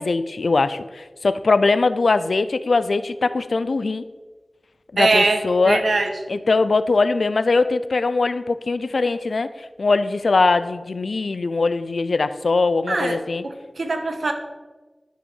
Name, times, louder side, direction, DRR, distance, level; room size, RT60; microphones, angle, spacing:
voice 1, 0.0-4.0 4.9-5.9 6.3-9.5 9.8-13.4, left 3 dB, 90° left, 13 dB, 0.6 m, -21 dB
voice 2, 5.0-6.1 12.9-13.2 13.4-14.3, right 3 dB, 85° right, 5 dB, 1.4 m, -22 dB
12.0 x 6.2 x 6.4 m, 1.3 s
wide cardioid pair, 70°, 0 cm